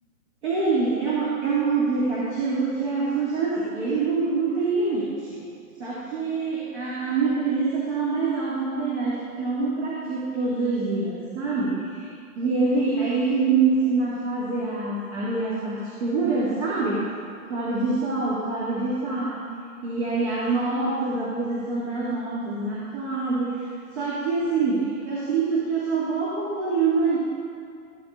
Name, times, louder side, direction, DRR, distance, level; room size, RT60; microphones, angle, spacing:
voice 1, 0.4-5.5 5.8-17.1 17.5-19.5 19.8-27.2, right 4 dB, 50° right, -7 dB, 2.8 m, -25 dB
14.0 x 11.5 x 4.0 m, 2.3 s
hypercardioid pair, 170°, 44 cm